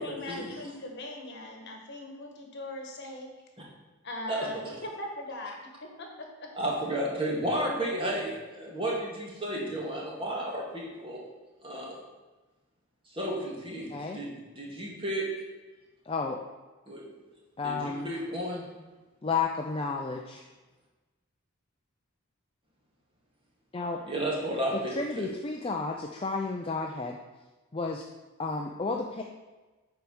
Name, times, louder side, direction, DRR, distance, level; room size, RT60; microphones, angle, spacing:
voice 1, 0.0-3.3 4.0-6.5, left 1 dB, 50° left, 2 dB, 1.4 m, -40 dB
voice 2, 4.3-4.7 6.6-11.3 11.6-12.0 13.1-15.3 16.9-17.0 17.6-18.6 24.0-25.3, right 1 dB, 25° right, -3 dB, 2.0 m, -32 dB
voice 3, 13.9-14.2 16.0-16.4 17.6-18.1 19.2-20.4 23.7-24.0 24.7-27.2 27.7-28.0 28.4-29.2, left 4 dB, 25° left, 1 dB, 0.5 m, -32 dB
8.4 x 4.6 x 6.2 m, 1.2 s
head